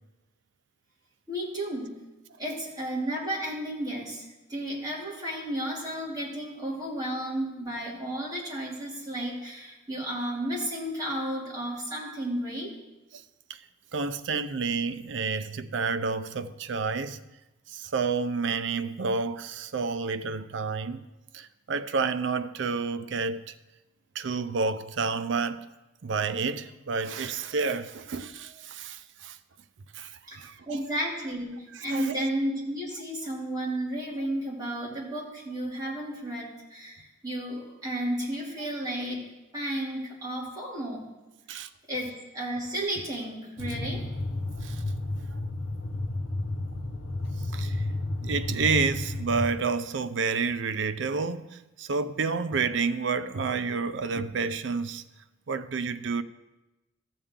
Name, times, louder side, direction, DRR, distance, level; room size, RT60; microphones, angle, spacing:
voice 1, 1.3-2.0 2.4-12.7 30.3-30.4 30.7-39.2 39.5-41.1 41.9-44.1, right 1 dB, 20° right, 2.6 m, -33 dB
voice 2, 13.9-17.2 17.7-21.1 21.3-23.5 24.1-25.7 26.0-29.4 29.9-30.8 31.9-32.3 41.5-41.7 44.6-44.8 47.5-47.8 48.2-55.0 55.5-56.2, right 4 dB, 65° right, 0.5 m, -30 dB
sound 1, 43.6-49.5, left 2 dB, 75° left, 1.1 m, -32 dB
14.5 x 7.1 x 3.7 m
head